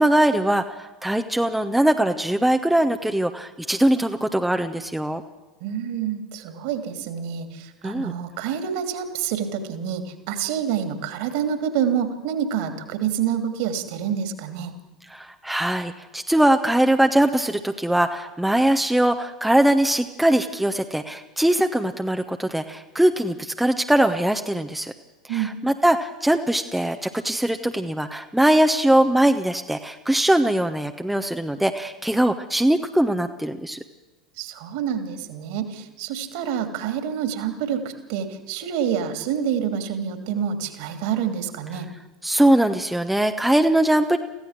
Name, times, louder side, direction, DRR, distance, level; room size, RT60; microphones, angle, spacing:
voice 1, 0.0-5.2 7.8-8.1 15.1-24.9 25.3-33.8 42.2-44.2, right 1 dB, 5° right, 6 dB, 1.0 m, -21 dB
voice 2, 5.6-14.7 25.3-25.5 34.4-41.9, right 8 dB, 55° right, 8 dB, 2.9 m, -27 dB
23.5 x 16.0 x 7.5 m, 1.1 s
figure-of-eight pair, 80°, 3 cm